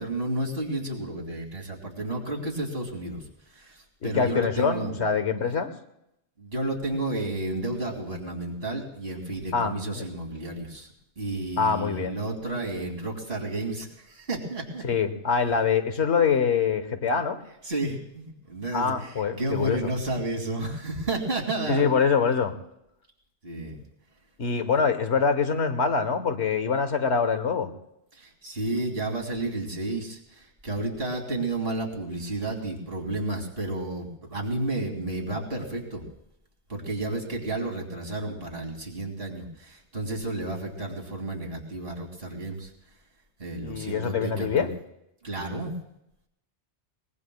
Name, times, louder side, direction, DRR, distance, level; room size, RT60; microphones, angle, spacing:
voice 1, 0.0-5.0 6.4-10.9 11.2-14.9 17.6-21.9 23.4-23.8 28.1-36.1 36.7-42.7 43.4-44.7 45.2-45.7, right 2 dB, 55° right, 0 dB, 2.9 m, -32 dB
voice 2, 4.0-5.7 9.5-10.0 11.6-12.1 14.8-17.4 18.7-19.8 21.6-22.5 24.4-27.7 43.6-44.7, left 6 dB, 75° left, 9 dB, 1.5 m, -24 dB
23.0 x 20.5 x 2.3 m, 0.81 s
omnidirectional pair, 1.2 m